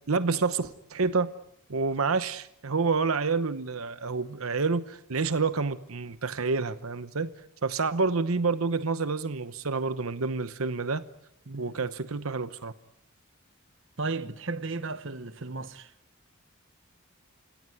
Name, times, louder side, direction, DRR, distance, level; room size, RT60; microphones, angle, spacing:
voice 1, 0.1-1.3 1.7-7.3 7.6-11.1 11.5-12.7, right 4 dB, 80° right, 0.9 m, -28 dB
voice 2, 14.0-15.9, right 3 dB, 60° right, 1.1 m, -34 dB
30.0 x 17.5 x 9.4 m
head